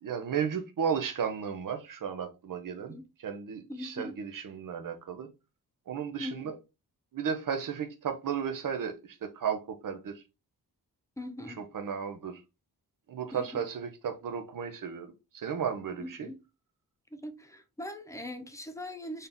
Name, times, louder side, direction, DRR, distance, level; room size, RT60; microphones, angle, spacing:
voice 1, 0.0-5.3 5.9-6.5 7.1-10.2 11.5-12.4 13.1-16.3, right 7 dB, 55° right, 0.7 m, -34 dB
voice 2, 3.7-4.2 6.2-6.5 11.2-11.6 13.3-13.6 16.0-16.4 17.1-19.3, left 1 dB, 10° left, 0.4 m, -41 dB
4.0 x 2.7 x 3.5 m
wide cardioid pair, 165°, 38 cm